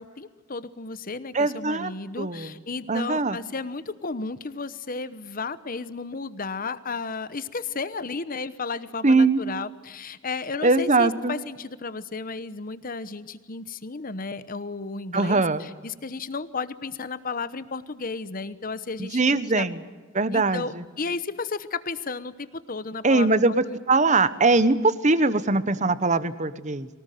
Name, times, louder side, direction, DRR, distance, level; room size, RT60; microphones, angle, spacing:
voice 1, 0.0-19.7 20.3-23.8, left 4 dB, 45° left, 14 dB, 1.0 m, -33 dB
voice 2, 1.3-1.9 2.2-2.5 2.9-3.4 9.0-9.4 10.6-11.4 15.1-15.6 19.0-19.8 20.1-20.8 23.0-26.9, right 3 dB, 35° right, 14 dB, 1.0 m, -21 dB
23.0 x 19.0 x 9.2 m, 1.4 s
head